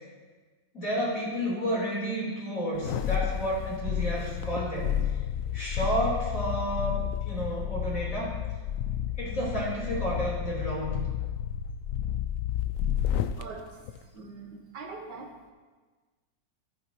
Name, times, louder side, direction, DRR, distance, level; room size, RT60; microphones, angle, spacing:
voice 1, 0.7-5.0 5.5-8.3 9.2-11.0, equal, 45° left, -6 dB, 4.5 m, -31 dB
sound 1, 2.7-13.4 13.9-14.0, left 10 dB, 70° left, 0.8 m, -31 dB
voice 2, 13.4-13.7 14.0-15.4, right 4 dB, 70° right, 2 dB, 2.0 m, -42 dB
14.0 x 14.0 x 3.1 m, 1.4 s
omnidirectional pair, 2.0 m